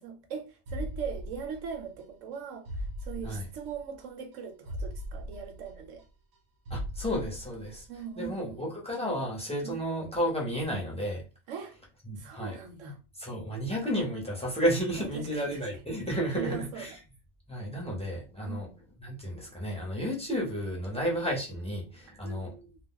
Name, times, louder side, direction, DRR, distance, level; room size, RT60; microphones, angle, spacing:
voice 1, 0.0-6.0 7.9-8.6 9.6-9.8 11.5-11.8 12.2-13.0 15.0-15.6 16.3-17.0 18.5-18.8 22.1-22.8, right 6 dB, 70° right, 1.0 m, -40 dB
sound 1, 0.7-2.0 2.3-2.4 2.7-4.0 4.3-4.4 4.7-6.4 6.7-8.0 8.3-8.4, equal, 85° right, 1.1 m, -39 dB
voice 2, 6.7-7.9 8.2-11.2 12.0-12.6 13.2-16.9 17.5-18.7 19.0-22.5, equal, 5° left, 0.6 m, -32 dB
2.3 x 2.2 x 3.6 m
omnidirectional pair, 1.4 m